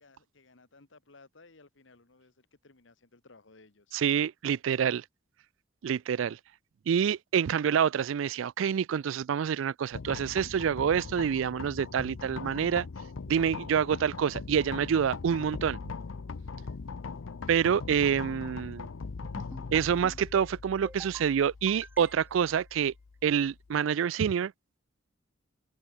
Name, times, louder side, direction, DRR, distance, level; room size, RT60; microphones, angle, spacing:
voice 1, 0.0-4.0, left 3 dB, 75° left, 1.5 m, -58 dB
voice 2, 3.9-5.0 5.8-6.4 6.9-12.9 13.3-15.8 17.5-18.9 19.7-22.9 23.2-24.5, right 8 dB, 80° right, 0.4 m, -27 dB
sound 1, 9.9-23.8, left 4 dB, 90° left, 0.6 m, -41 dB
sound 2, 19.2-19.7 20.0-20.5 20.8-21.3 21.7-22.4, right 1 dB, 10° right, 1.2 m, -47 dB
head